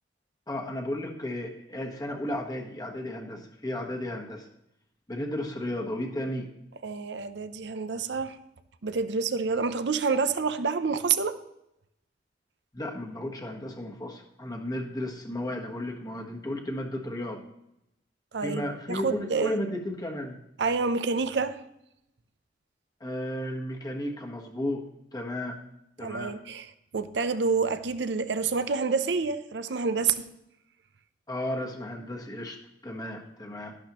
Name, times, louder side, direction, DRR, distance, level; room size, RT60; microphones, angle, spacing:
voice 1, 0.5-4.5 5.1-6.5 12.7-17.4 18.4-20.4 23.0-24.9 25.1-25.6 26.0-26.4 31.3-32.6 32.8-33.8, left 1 dB, 20° left, 1.3 m, -34 dB
voice 2, 6.8-8.4 8.8-11.4 18.3-19.6 20.6-21.6 26.0-26.7 26.9-30.3, right 5 dB, 70° right, 0.6 m, -28 dB
12.5 x 11.5 x 3.0 m
head